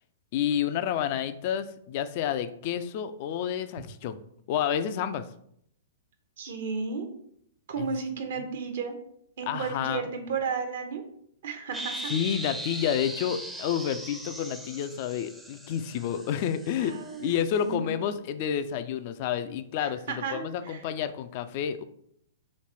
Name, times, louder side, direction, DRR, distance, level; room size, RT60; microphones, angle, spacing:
voice 1, 0.3-4.2 4.5-5.3 7.8-7.9 9.5-10.1 12.1-21.8, left 9 dB, 45° left, 11 dB, 0.3 m, -30 dB
voice 2, 6.4-7.1 7.7-9.0 9.4-11.0 11.4-12.1 16.8-17.3 17.6-18.0 19.8-20.8, right 5 dB, 65° right, 5 dB, 0.8 m, -33 dB
sound 1, 11.7-17.6, right 1 dB, 5° right, 0.5 m, -39 dB
3.2 x 3.1 x 4.3 m, 0.70 s
hypercardioid pair, 115°, 0 cm